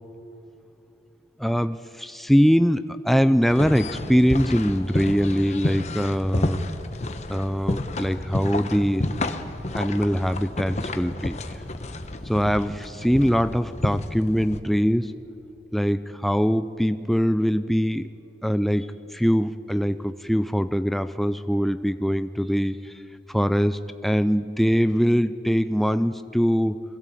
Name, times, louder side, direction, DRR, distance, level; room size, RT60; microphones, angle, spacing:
voice 1, 1.4-6.6 7.3-9.1 9.7-11.4 12.2-15.2 15.7-18.1 18.4-23.0 23.3-26.8, equal, ahead, 11 dB, 0.4 m, -22 dB
sound 1, 3.5-14.6, left 1 dB, 40° left, 1.0 m, -31 dB
22.0 x 16.5 x 8.5 m, 2.8 s
head